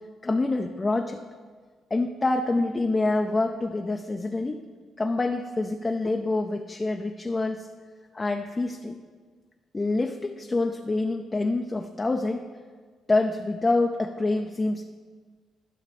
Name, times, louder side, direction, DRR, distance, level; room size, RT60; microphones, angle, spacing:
voice 1, 0.2-1.2 1.9-4.6 5.0-7.7 8.1-9.0 9.7-12.5 13.1-14.8, left 2 dB, 25° left, 4 dB, 0.5 m, -26 dB
11.5 x 5.6 x 5.3 m, 1.5 s
cardioid pair, 90°, 0 cm